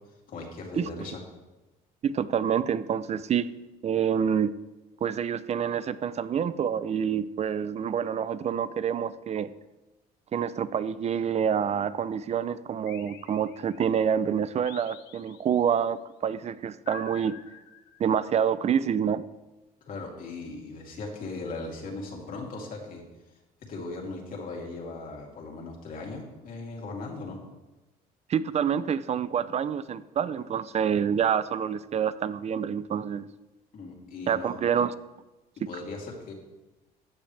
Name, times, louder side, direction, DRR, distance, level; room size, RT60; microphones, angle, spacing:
voice 1, 0.3-1.2 19.8-23.0 23.7-27.4 33.7-34.5 35.6-36.3, left 3 dB, 55° left, -1 dB, 2.9 m, -38 dB
voice 2, 2.0-3.5 3.8-4.5 5.0-9.5 10.3-17.4 18.0-19.2 28.3-33.3 34.3-34.9, right 8 dB, 40° right, 16 dB, 0.5 m, -27 dB
sound 1, 12.9-14.0 14.7-15.8 16.9-18.3, left 8 dB, 90° left, 0.9 m, -48 dB
14.5 x 8.9 x 3.3 m, 1.1 s
cardioid pair, 110°, 17 cm